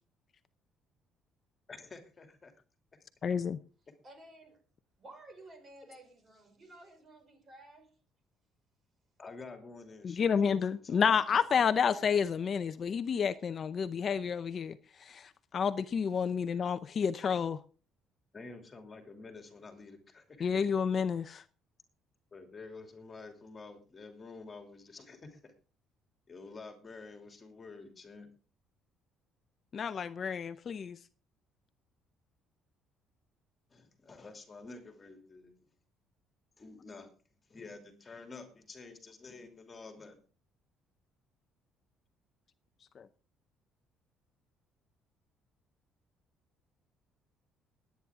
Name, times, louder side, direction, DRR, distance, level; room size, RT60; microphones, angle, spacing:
voice 1, 1.7-2.5 9.2-11.4 11.7-12.2 17.2-17.3 18.3-20.7 22.3-25.5 26.3-28.3 33.7-35.6 36.6-37.1 37.5-40.2, left 3 dB, 25° left, 2.8 m, -49 dB
voice 2, 3.2-3.6 10.0-14.8 15.0-17.5 20.4-21.4 29.7-31.0 43.0-43.1, left 6 dB, 40° left, 0.7 m, -30 dB
voice 3, 4.0-4.6 5.0-7.9, right 1 dB, 35° right, 5.3 m, -54 dB
20.0 x 9.5 x 3.6 m
cardioid pair, 115°, 0 cm